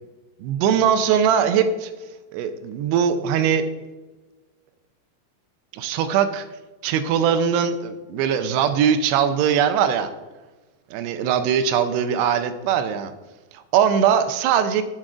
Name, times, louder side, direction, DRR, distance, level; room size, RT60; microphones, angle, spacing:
voice 1, 0.4-1.9 2.3-3.6 5.7-6.5 6.8-10.1 10.9-13.1 13.5-14.8, right 8 dB, 85° right, 10 dB, 2.5 m, -21 dB
10.5 x 7.5 x 2.4 m, 1.2 s
omnidirectional pair, 5.0 m